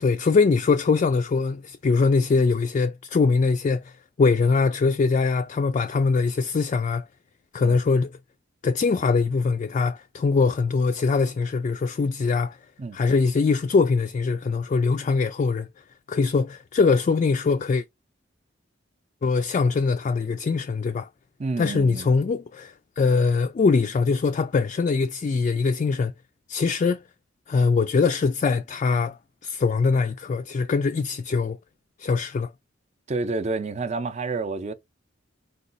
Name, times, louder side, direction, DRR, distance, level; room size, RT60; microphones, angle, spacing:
voice 1, 0.0-3.9 4.2-7.0 7.5-8.1 8.6-12.6 12.9-15.7 16.1-17.8 19.2-21.1 21.6-26.1 26.5-27.0 27.5-31.6 32.0-32.5, left 4 dB, 40° left, 0.3 m, -22 dB
voice 2, 21.4-22.1 33.1-34.7, right 3 dB, 35° right, 0.5 m, -29 dB
4.9 x 2.2 x 3.9 m
head